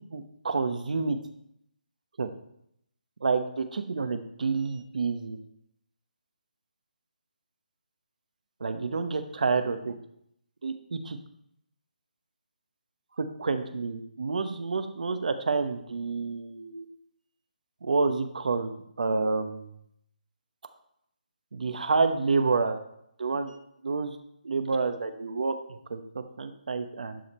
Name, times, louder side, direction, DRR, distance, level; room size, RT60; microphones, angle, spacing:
voice 1, 0.1-1.2 2.2-2.3 3.2-5.4 8.6-9.9 10.6-11.2 13.2-16.9 17.8-18.7 19.0-19.7 21.5-22.8 23.2-23.5 23.8-24.2 24.4-27.2, right 4 dB, 65° right, 8 dB, 1.0 m, -29 dB
11.5 x 5.1 x 4.3 m, 0.74 s
hypercardioid pair, 165°, 5 cm